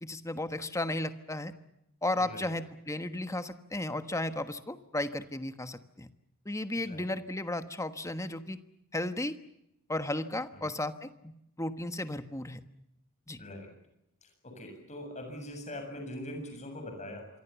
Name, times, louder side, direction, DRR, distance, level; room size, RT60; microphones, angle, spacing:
voice 1, 0.0-1.5 2.0-6.1 6.4-8.6 8.9-9.3 9.9-11.3 11.6-12.6 13.3-13.4, left 1 dB, 15° left, 10 dB, 1.3 m, -34 dB
voice 2, 2.2-2.5 6.8-7.1 10.5-10.6 13.4-13.7 14.2-17.3, left 1 dB, 35° left, 4 dB, 7.4 m, -42 dB
27.0 x 23.5 x 7.1 m, 0.82 s
head